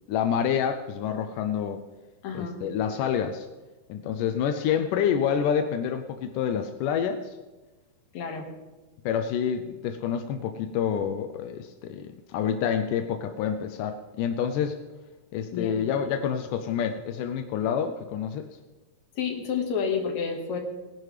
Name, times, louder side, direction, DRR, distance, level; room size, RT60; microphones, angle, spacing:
voice 1, 0.1-1.8 2.3-3.5 3.9-7.3 9.1-14.8 15.3-18.5, left 8 dB, 80° left, 7 dB, 1.9 m, -28 dB
voice 2, 2.2-2.6 8.1-8.5 15.5-15.8 19.2-20.6, left 6 dB, 55° left, 2 dB, 2.6 m, -29 dB
19.5 x 10.5 x 3.2 m, 1.2 s
omnidirectional pair, 4.3 m